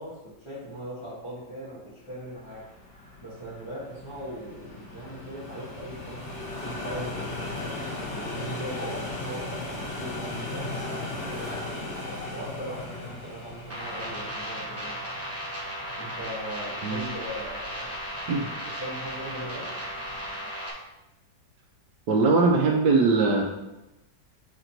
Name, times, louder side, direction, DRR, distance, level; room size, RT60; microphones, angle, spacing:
voice 1, 0.0-2.7 3.2-7.6 8.1-15.0 16.0-18.0 18.6-19.7, equal, 15° left, -12 dB, 1.6 m, -39 dB
sound 1, 2.2-20.5, left 2 dB, 45° left, 1.4 m, -38 dB
sound 2, 13.7-20.7, equal, 10° right, 0.7 m, -35 dB
voice 2, 22.1-23.4, right 3 dB, 75° right, -1 dB, 1.2 m, -21 dB
6.0 x 3.9 x 4.4 m, 0.98 s
omnidirectional pair, 1.8 m